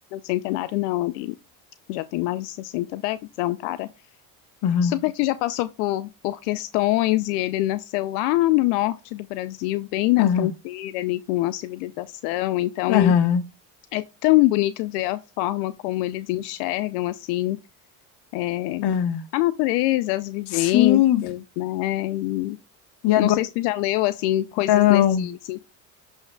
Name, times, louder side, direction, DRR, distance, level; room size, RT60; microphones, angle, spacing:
voice 1, 0.1-1.3 1.9-3.9 4.8-13.1 13.9-17.6 18.3-18.9 19.3-22.6 23.2-25.6, left 17 dB, 85° left, 0.6 m, -25 dB
voice 2, 4.6-5.0 10.2-10.5 12.9-13.4 18.8-19.2 20.5-21.2 23.0-23.4 24.7-25.3, left 10 dB, 60° left, 1.1 m, -19 dB
11.5 x 5.7 x 2.3 m
supercardioid pair, 95°, 45 cm